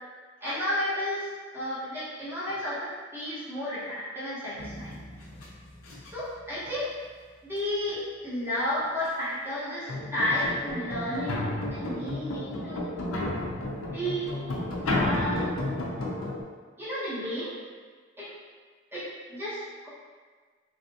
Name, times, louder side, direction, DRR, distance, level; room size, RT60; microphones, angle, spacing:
voice 1, 0.4-1.3 1.5-5.0 6.0-6.9 7.4-12.9 13.8-14.3 15.0-15.5 16.8-17.5 18.2-18.3 18.9-19.9, left 1 dB, 10° right, -13 dB, 1.2 m, -32 dB
sound 1, 4.6-6.3 9.0-9.1 9.9-16.4, left 1 dB, 90° left, 0.6 m, -32 dB
3.2 x 2.6 x 2.7 m, 1.5 s
head